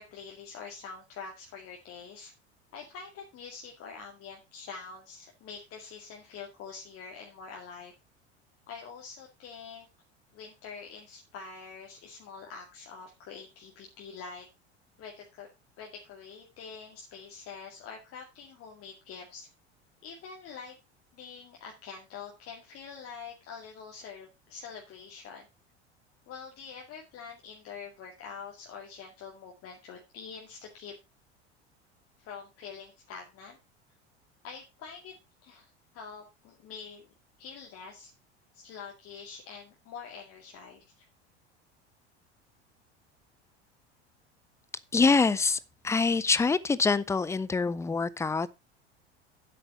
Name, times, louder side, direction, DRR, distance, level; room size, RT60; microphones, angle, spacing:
voice 1, 0.0-2.3 2.7-7.9 8.7-9.9 10.3-14.5 15.0-15.5 15.8-19.5 20.0-20.7 21.1-25.4 26.3-31.0 32.2-33.6 34.4-35.2 35.4-37.1 37.4-38.1 38.5-41.1, left 5 dB, 40° left, 2.2 m, -45 dB
voice 2, 44.9-48.5, left 4 dB, 10° left, 0.6 m, -25 dB
10.0 x 8.1 x 4.3 m
figure-of-eight pair, 75°, 33 cm